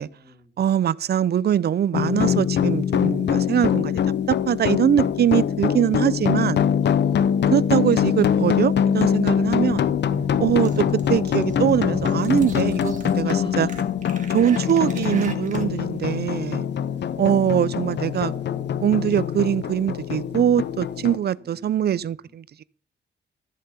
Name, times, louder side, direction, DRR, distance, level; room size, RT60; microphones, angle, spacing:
voice 1, 0.0-0.5 6.8-8.1 13.2-13.7 14.4-15.5 16.8-19.3 21.4-22.3, left 2 dB, 30° left, 3.6 m, -46 dB
voice 2, 0.6-4.0 4.3-6.6 7.5-9.9 10.4-13.7 14.3-16.7 17.2-18.3 18.8-22.6, right 9 dB, 60° right, 0.5 m, -22 dB
sound 1, 1.9-21.2, left 8 dB, 70° left, 0.6 m, -23 dB
sound 2, 9.4-15.8, right 5 dB, 45° right, 1.9 m, -38 dB
13.5 x 7.4 x 5.7 m
wide cardioid pair, 130°, 18 cm